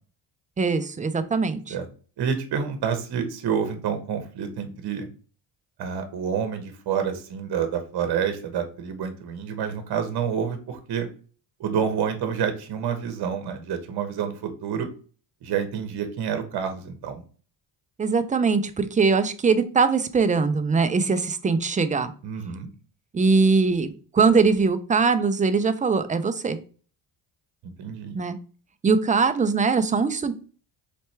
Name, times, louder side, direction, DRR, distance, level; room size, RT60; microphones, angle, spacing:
voice 1, 0.6-1.7 18.0-22.1 23.1-26.6 28.1-28.4 28.8-30.3, right 4 dB, 20° right, 10 dB, 0.4 m, -21 dB
voice 2, 2.2-5.1 5.8-11.1 11.6-14.9 15.4-17.2 22.2-22.7 27.8-28.2, right 7 dB, 55° right, 7 dB, 1.0 m, -28 dB
4.2 x 3.4 x 3.2 m, 0.39 s
cardioid pair, 95°, 45 cm